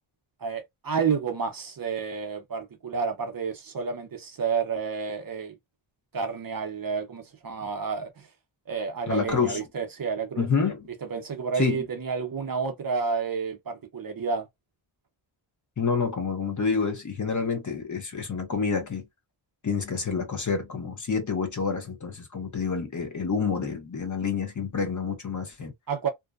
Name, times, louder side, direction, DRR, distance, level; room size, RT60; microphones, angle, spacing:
voice 1, 0.4-5.5 6.1-8.3 8.7-10.5 11.0-14.5 25.9-26.1, right 5 dB, 45° right, 0.6 m, -30 dB
voice 2, 9.1-9.6 10.4-10.8 11.6-11.8 15.8-19.0 19.6-25.7, left 5 dB, 35° left, 0.8 m, -28 dB
2.6 x 2.1 x 2.3 m
wide cardioid pair, 95°, 49 cm